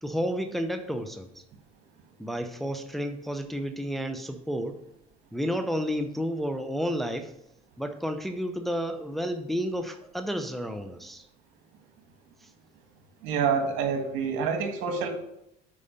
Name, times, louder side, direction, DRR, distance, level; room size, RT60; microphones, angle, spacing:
voice 1, 0.0-1.4 2.2-4.8 5.3-7.3 7.8-11.3 12.4-12.5, equal, ahead, 6 dB, 0.8 m, -31 dB
voice 2, 13.2-15.1, right 6 dB, 75° right, 4 dB, 1.9 m, -27 dB
8.5 x 4.9 x 5.3 m, 0.81 s
cardioid pair, 105°, 20 cm